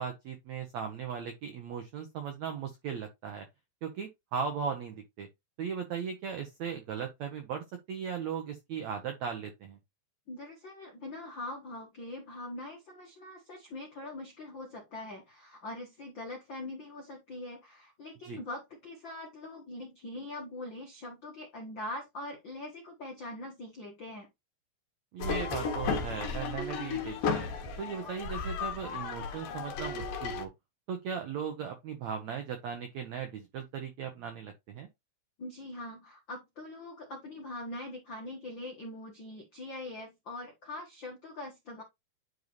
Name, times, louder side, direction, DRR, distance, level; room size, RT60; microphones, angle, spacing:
voice 1, 0.0-3.5 3.8-5.3 5.6-9.8 18.2-18.4 25.1-27.5 27.8-30.5 30.9-34.9, right 7 dB, 80° right, 1.6 m, -37 dB
voice 2, 10.3-24.3 35.4-41.8, left 2 dB, 80° left, 1.0 m, -42 dB
sound 1, 25.2-30.4, left 5 dB, 60° left, 2.8 m, -34 dB
10.5 x 4.0 x 3.1 m
omnidirectional pair, 4.7 m